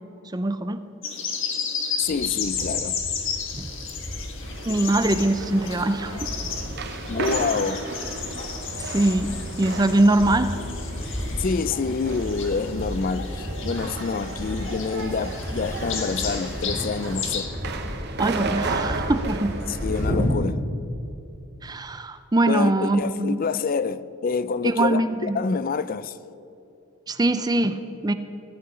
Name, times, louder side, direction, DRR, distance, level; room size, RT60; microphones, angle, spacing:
voice 1, 0.3-0.8 3.6-3.7 4.7-6.2 8.8-10.5 18.2-19.6 21.6-23.4 24.6-25.4 27.1-28.1, right 2 dB, 20° right, 0.4 m, -22 dB
sound 1, 1.0-17.5, left 6 dB, 60° left, 1.5 m, -33 dB
voice 2, 2.0-3.0 7.1-7.9 11.4-17.5 19.7-20.6 22.5-26.2, left 5 dB, 40° left, 0.4 m, -27 dB
sound 2, 2.0-20.3, equal, 10° left, 1.8 m, -34 dB
sound 3, 4.4-20.1, right 3 dB, 50° right, 1.0 m, -34 dB
16.5 x 5.8 x 9.8 m
head